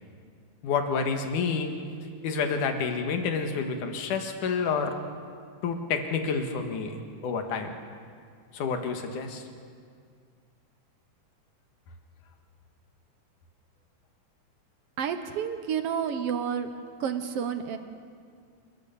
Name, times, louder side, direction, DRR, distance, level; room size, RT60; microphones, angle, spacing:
voice 1, 0.6-1.7 2.2-5.0 5.6-7.7 8.5-9.4, left 5 dB, 80° left, 5 dB, 3.1 m, -29 dB
voice 2, 15.0-16.7 17.0-17.8, right 8 dB, 60° right, 8 dB, 1.9 m, -30 dB
28.5 x 14.5 x 7.1 m, 2.1 s
omnidirectional pair, 3.6 m